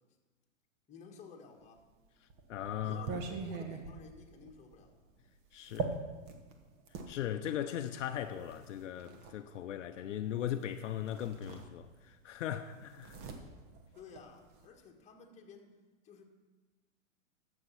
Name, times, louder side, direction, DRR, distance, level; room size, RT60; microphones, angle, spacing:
voice 1, 0.9-1.8 2.8-5.0 13.9-15.7 16.0-16.2, left 5 dB, 15° left, 1.5 m, -53 dB
sound 1, 1.8-7.1 8.0-9.4 10.6-10.7 11.0-12.2 12.4-14.7, right 4 dB, 40° right, 1.4 m, -43 dB
voice 2, 2.5-3.1 5.5-6.0 7.1-13.2, left 10 dB, 65° left, 0.7 m, -38 dB
11.5 x 7.4 x 5.7 m
hypercardioid pair, 130°, 40 cm